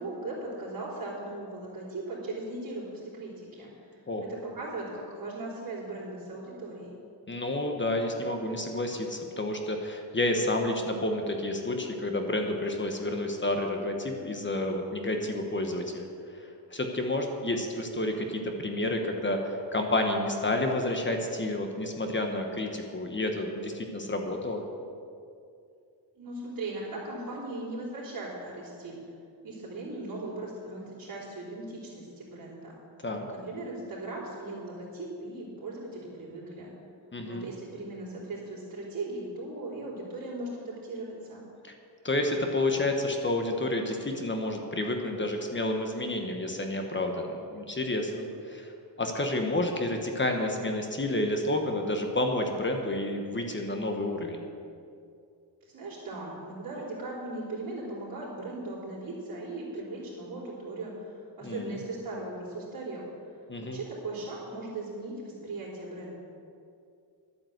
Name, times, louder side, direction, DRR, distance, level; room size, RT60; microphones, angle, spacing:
voice 1, 0.0-6.9 26.1-29.0 29.4-32.7 33.3-36.7 37.2-41.4 55.6-63.0 63.6-66.1, right 2 dB, 50° right, -9 dB, 4.2 m, -38 dB
voice 2, 7.3-16.1 16.3-24.6 33.0-33.3 37.1-37.5 41.6-41.7 42.0-48.7 49.0-54.4 61.4-61.8 63.5-63.8, left 1 dB, 25° left, 3 dB, 1.3 m, -30 dB
12.0 x 9.0 x 8.1 m, 2.5 s
cardioid pair, 125°, 44 cm